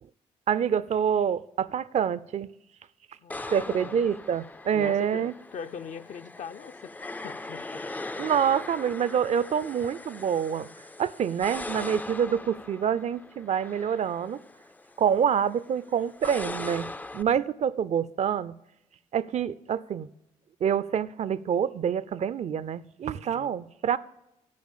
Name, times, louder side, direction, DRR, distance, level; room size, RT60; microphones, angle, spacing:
voice 1, 0.5-2.5 3.5-5.3 8.2-10.7 11.0-14.4 15.0-18.6 19.1-20.1 20.6-24.0, right 8 dB, 55° right, 0.4 m, -27 dB
voice 2, 3.2-4.0 4.7-7.9 23.1-23.6, left 7 dB, 60° left, 0.5 m, -41 dB
sound 1, 3.3-17.2, left 2 dB, 10° left, 0.3 m, -40 dB
10.5 x 4.6 x 7.2 m
supercardioid pair, 50°, 14 cm